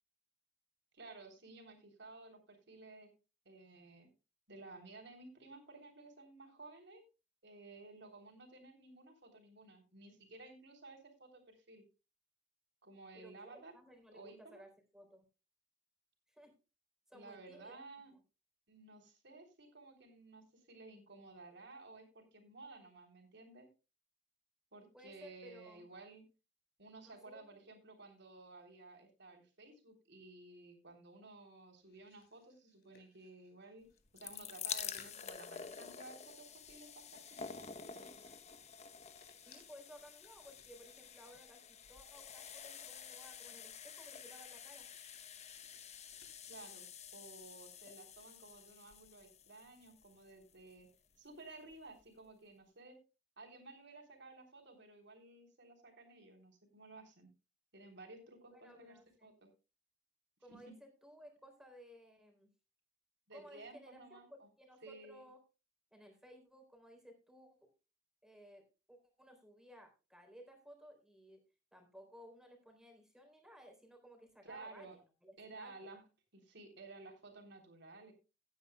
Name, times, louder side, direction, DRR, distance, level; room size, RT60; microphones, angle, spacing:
voice 1, 0.9-3.1 3.5-4.1 4.5-7.0 7.4-11.8 12.8-13.7 14.1-14.6 17.1-18.1 18.7-23.7 24.7-26.2 26.8-33.9 34.1-38.1 46.5-46.9 47.1-50.9 51.2-53.0 53.4-57.3 57.7-59.5 60.5-60.7 63.3-64.5 64.8-65.3 74.4-75.0 75.4-76.0 76.3-78.1, right 3 dB, 65° right, 3 dB, 3.5 m, -55 dB
voice 2, 13.1-15.2 16.3-16.5 17.1-17.8 24.9-25.9 27.0-27.6 39.4-44.9 58.5-59.3 60.4-62.5 63.3-65.4 65.9-67.7 68.2-71.4 71.7-75.9, equal, 5° right, 3 dB, 3.7 m, -58 dB
sound 1, 31.8-34.6 34.9-46.8, left 5 dB, 60° left, 3.4 m, -69 dB
sound 2, 33.9-50.9 51.7-51.8 52.0-52.1, left 7 dB, 35° left, 1.0 m, -49 dB
17.0 x 9.5 x 2.3 m, 0.31 s
head